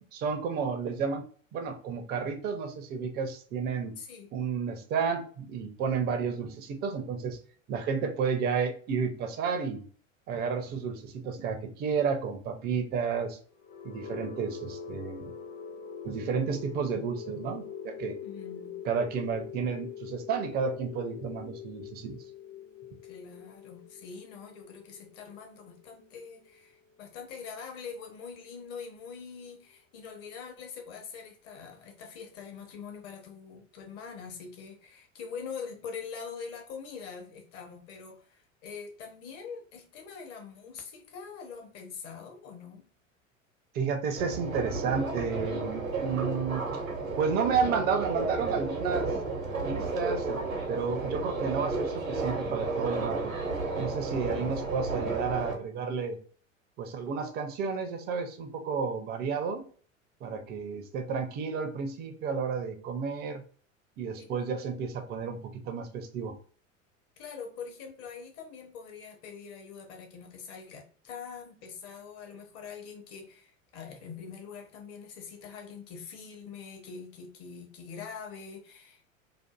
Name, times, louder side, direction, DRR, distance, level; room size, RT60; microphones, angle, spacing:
voice 1, 0.1-1.2 1.5-4.0 4.3-7.4 7.7-9.9 10.3-13.4 13.8-15.3 16.0-18.1 18.8-22.2 43.7-46.6 47.2-49.1 49.6-53.3 53.8-56.2 56.8-59.6 60.2-63.4 64.0-66.3, right 6 dB, 25° right, 0.4 m, -31 dB
voice 2, 4.0-4.3 18.2-18.8 23.0-42.9 64.1-64.3 67.2-79.0, left 6 dB, 35° left, 0.8 m, -44 dB
sound 1, 13.5-27.4, left 7 dB, 65° left, 0.8 m, -44 dB
Subway metro underground, 44.2-55.5, right 3 dB, 85° right, 0.8 m, -32 dB
2.6 x 2.4 x 2.3 m
figure-of-eight pair, 80°, 40 cm